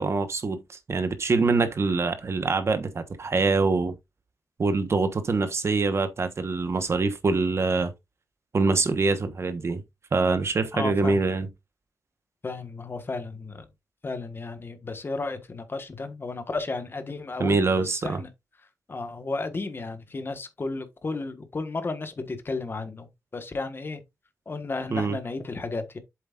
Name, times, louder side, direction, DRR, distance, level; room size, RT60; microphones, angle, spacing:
voice 1, 0.0-3.9 4.6-7.9 8.5-9.8 10.1-11.5 17.4-18.2 24.9-25.2, right 3 dB, 45° right, 1.2 m, -24 dB
voice 2, 10.7-11.2 12.4-13.6 14.0-17.6 17.8-18.3 18.9-23.1 23.3-24.0 24.5-26.0, left 3 dB, 35° left, 1.4 m, -33 dB
7.9 x 7.5 x 2.5 m
wide cardioid pair, 110°, 6 cm